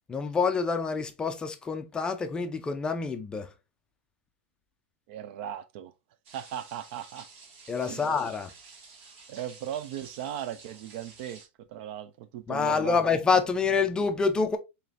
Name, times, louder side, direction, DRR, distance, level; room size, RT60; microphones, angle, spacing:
voice 1, 0.1-3.5 7.7-8.5 12.5-14.6, left 5 dB, 10° left, 0.4 m, -27 dB
voice 2, 5.1-5.9 6.3-7.3 7.8-8.1 9.3-13.0, right 10 dB, 50° right, 0.4 m, -38 dB
sound 1, 6.2-11.5, right 4 dB, 80° right, 1.6 m, -51 dB
4.8 x 2.9 x 2.4 m
supercardioid pair, 160°, 7 cm